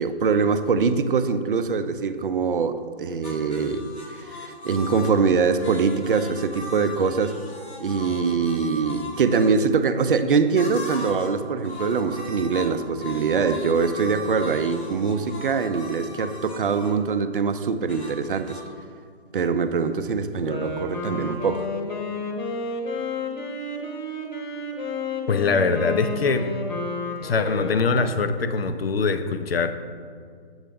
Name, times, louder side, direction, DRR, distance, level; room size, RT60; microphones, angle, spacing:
voice 1, 0.0-3.8 4.1-7.4 7.8-18.6 19.3-21.7, right 5 dB, 55° right, 10 dB, 0.5 m, -23 dB
sound 1, 3.2-9.5 10.5-11.4 11.6-17.0 17.9-18.6, left 2 dB, 90° left, 1.8 m, -38 dB
Wind instrument woodwind instrument, 20.3-28.3, left 2 dB, 45° left, 1.1 m, -31 dB
voice 2, 25.3-26.5 27.2-29.7, left 4 dB, 65° left, 10 dB, 0.7 m, -23 dB
8.0 x 7.4 x 3.5 m, 2.2 s
figure-of-eight pair, 140°, 32 cm